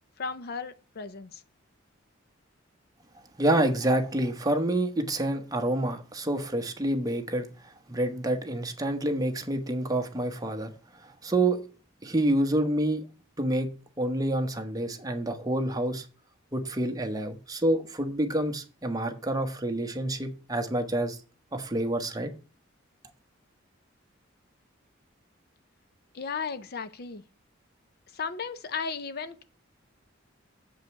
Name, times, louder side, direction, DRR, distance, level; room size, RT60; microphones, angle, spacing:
voice 1, 0.2-1.4 26.1-27.2 28.1-29.4, left 5 dB, 50° left, 0.6 m, -35 dB
voice 2, 3.4-7.5 7.9-10.7 11.0-11.6 12.0-13.0 13.4-13.7 14.0-16.1 16.5-21.2 21.5-22.3, right 1 dB, 20° right, 1.2 m, -28 dB
7.9 x 5.3 x 6.3 m
head